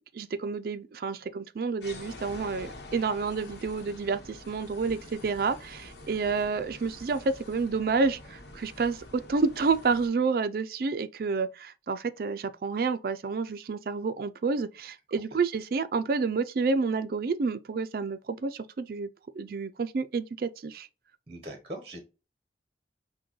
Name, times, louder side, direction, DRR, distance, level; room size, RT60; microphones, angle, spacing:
voice 1, 0.1-19.1 19.3-20.9, right 4 dB, 55° right, 0.4 m, -29 dB
sound 1, 1.8-10.1, left 2 dB, 75° left, 0.9 m, -46 dB
voice 2, 21.3-22.0, right 1 dB, 35° right, 0.9 m, -41 dB
6.0 x 2.2 x 3.0 m
head